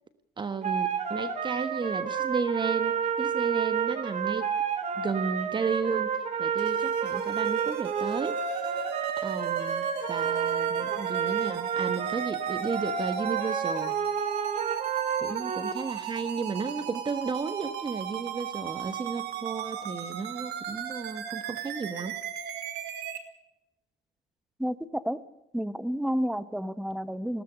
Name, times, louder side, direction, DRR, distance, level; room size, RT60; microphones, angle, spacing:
voice 1, 0.4-4.5 5.0-8.9 9.2-14.0 15.2-22.2, right 5 dB, 25° right, 10 dB, 1.3 m, -33 dB
sound 1, 0.6-15.7, right 7 dB, 45° right, 3.0 m, -30 dB
sound 2, 6.6-23.2, right 10 dB, 85° right, 2.9 m, -37 dB
voice 2, 24.6-25.2 25.5-27.4, equal, ahead, 13 dB, 1.2 m, -30 dB
20.0 x 17.5 x 8.3 m, 0.90 s
cardioid pair, 110°, 17 cm